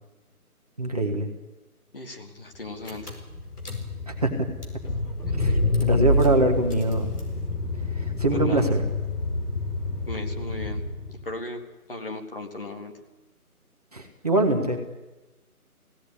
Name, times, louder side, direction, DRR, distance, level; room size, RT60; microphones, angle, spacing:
voice 1, 0.8-1.3 4.1-4.5 5.4-7.1 7.9-8.8 13.9-14.8, right 2 dB, 25° right, 1 dB, 1.5 m, -24 dB
voice 2, 1.9-3.2 5.4-5.5 8.3-8.7 10.1-10.8 11.1-11.6 11.9-12.9, left 2 dB, 35° left, 3 dB, 2.1 m, -36 dB
Car / Engine, 2.5-2.6 2.8-11.2, left 2 dB, 85° left, 5.0 m, -27 dB
18.5 x 17.0 x 9.8 m, 1.1 s
figure-of-eight pair, 175°, 45 cm